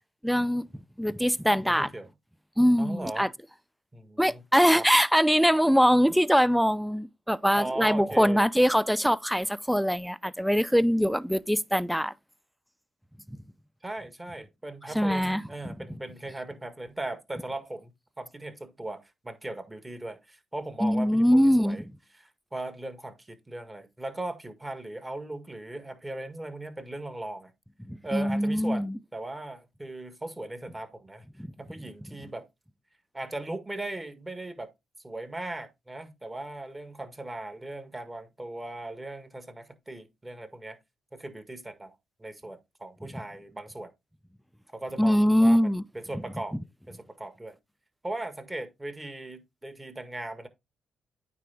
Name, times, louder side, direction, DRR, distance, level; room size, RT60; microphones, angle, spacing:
voice 1, 0.2-0.6 1.0-1.9 2.6-3.3 4.2-12.1 14.9-15.4 20.8-21.8 27.9-29.0 45.0-45.8, equal, ahead, 0.5 m, -23 dB
voice 2, 1.6-2.1 2.8-3.3 3.9-4.4 4.7-4.9 7.5-8.5 13.8-17.9 18.2-21.8 22.1-27.5 28.0-28.9 29.1-31.3 31.6-32.5 33.1-34.7 35.0-40.8 41.1-43.9 44.7-45.6 45.9-46.6 46.9-47.6 48.0-50.5, right 2 dB, 20° right, 1.6 m, -38 dB
9.2 x 3.5 x 3.4 m
supercardioid pair, 65°, 0 cm